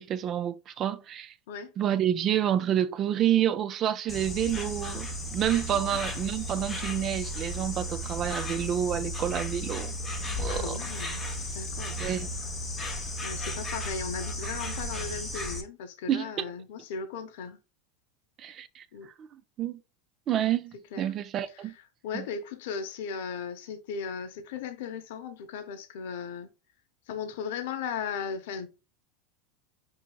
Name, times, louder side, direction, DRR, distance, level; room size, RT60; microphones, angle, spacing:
voice 1, 0.0-1.3 1.8-9.9 10.4-10.8 12.0-12.3 16.1-16.5 18.4-18.9 19.2-19.8 20.3-21.7 22.1-22.3, right 10 dB, 35° right, 0.4 m, -29 dB
Insect, 4.1-15.6, left 1 dB, 15° left, 0.8 m, -34 dB
voice 2, 10.5-11.2 11.6-12.0 13.2-17.6 18.9-19.1 20.9-21.0 21.5-21.6 22.0-26.5 27.1-28.7, left 6 dB, 75° left, 0.6 m, -37 dB
5.6 x 2.8 x 2.2 m
supercardioid pair, 140°, 0 cm